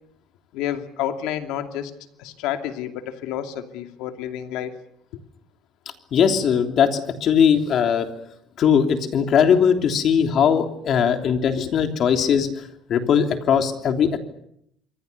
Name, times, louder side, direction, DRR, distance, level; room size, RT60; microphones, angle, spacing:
voice 1, 0.5-1.9 2.2-4.8 11.1-11.7, left 11 dB, 85° left, 7 dB, 2.6 m, -30 dB
voice 2, 6.1-8.1 8.6-12.5 12.9-14.2, left 7 dB, 50° left, 6 dB, 3.2 m, -19 dB
27.5 x 23.5 x 6.9 m, 0.73 s
cardioid pair, 135°, 0 cm